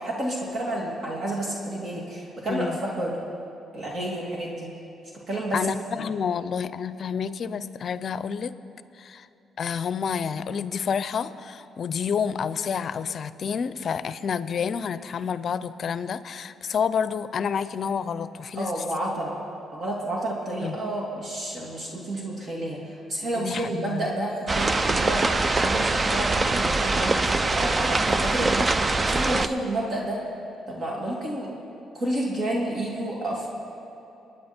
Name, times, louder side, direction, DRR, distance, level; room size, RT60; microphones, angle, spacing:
voice 1, 0.0-3.2 3.7-4.7 5.3-5.7 6.0-6.1 18.5-19.4 19.7-25.2 25.6-30.2 30.7-31.5 31.9-33.5, right 1 dB, 45° right, -3 dB, 2.8 m, -30 dB
voice 2, 5.5-8.5 9.0-9.3 9.6-18.8 20.6-20.8 23.4-24.1, left 7 dB, 55° left, 14 dB, 0.5 m, -29 dB
sound 1, 24.5-29.5, right 2 dB, 25° right, 0.6 m, -23 dB
27.0 x 9.6 x 4.5 m, 2.9 s
cardioid pair, 90°, 0 cm